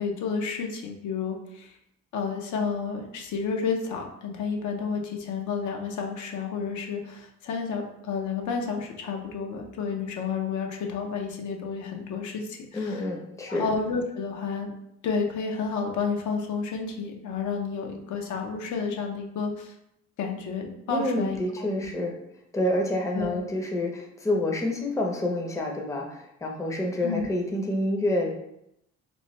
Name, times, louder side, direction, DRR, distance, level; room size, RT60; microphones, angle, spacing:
voice 1, 0.0-1.8 2.1-13.0 13.5-14.7 15.0-19.7 20.2-21.9 23.1-23.4 27.0-27.3, left 5 dB, 75° left, 2 dB, 0.6 m, -31 dB
voice 2, 12.7-13.7 20.9-22.1 22.5-28.3, left 1 dB, 10° left, 1 dB, 0.5 m, -28 dB
3.0 x 2.1 x 3.0 m, 0.79 s
cardioid pair, 90°, 30 cm